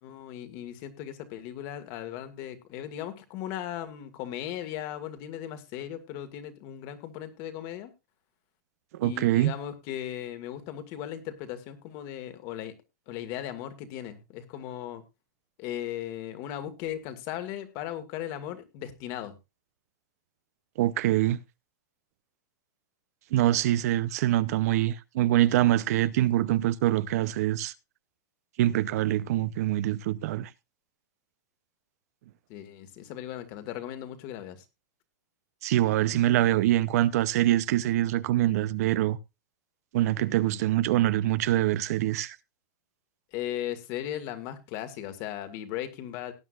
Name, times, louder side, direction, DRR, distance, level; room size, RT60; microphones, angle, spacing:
voice 1, 0.0-7.9 9.0-12.7 13.1-15.0 15.6-19.3 32.5-34.6 43.3-46.3, left 11 dB, 45° left, 1.8 m, -37 dB
voice 2, 8.9-9.5 20.8-21.4 23.3-27.7 28.6-30.5 35.6-39.2 39.9-42.4, right 14 dB, 60° right, 0.7 m, -24 dB
18.0 x 9.3 x 2.5 m
supercardioid pair, 145°, 9 cm